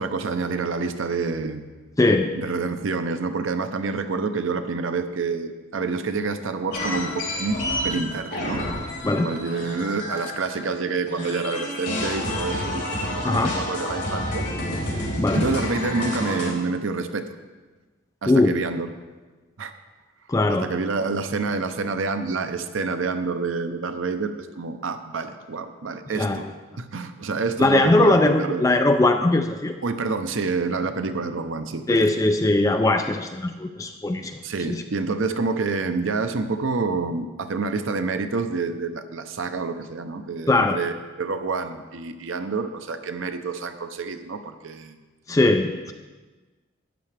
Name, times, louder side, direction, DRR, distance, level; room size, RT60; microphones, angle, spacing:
voice 1, 0.0-1.6 2.4-8.6 9.2-14.4 15.3-17.3 18.2-18.9 19.6-19.7 20.6-26.5 26.8-28.6 29.8-32.0 34.4-40.9 41.2-45.0, right 4 dB, 80° right, 9 dB, 0.7 m, -28 dB
voice 2, 2.0-2.3 9.0-9.3 13.2-13.5 15.2-15.5 18.3-18.6 20.3-20.7 26.1-26.5 27.6-29.8 31.9-34.4 34.7-34.8 40.5-40.8 45.3-45.9, left 2 dB, 15° left, 6 dB, 0.3 m, -20 dB
sound 1, 6.7-10.8 11.1-16.5, left 1 dB, 55° left, 4.0 m, -29 dB
13.0 x 9.1 x 3.3 m, 1.3 s
head